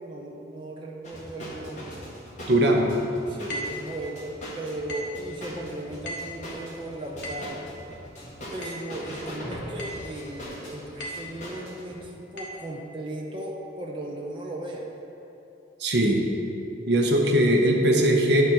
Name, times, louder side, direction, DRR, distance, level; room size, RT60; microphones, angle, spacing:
voice 1, 0.0-2.1 3.3-7.6 8.5-14.9, right 1 dB, 25° right, -2 dB, 0.6 m, -37 dB
sound 1, 1.0-11.9, equal, 40° left, 1.6 m, -40 dB
voice 2, 2.5-3.0 15.8-16.2 16.9-18.4, right 1 dB, 60° right, 1 dB, 0.8 m, -20 dB
sound 2, 3.5-3.9 4.9-5.2 6.1-6.4 7.2-7.6 8.6-8.9 9.8-10.1 11.0-11.4 12.4-12.6, equal, 65° left, 1.2 m, -36 dB
9.4 x 4.9 x 4.4 m, 3.0 s
head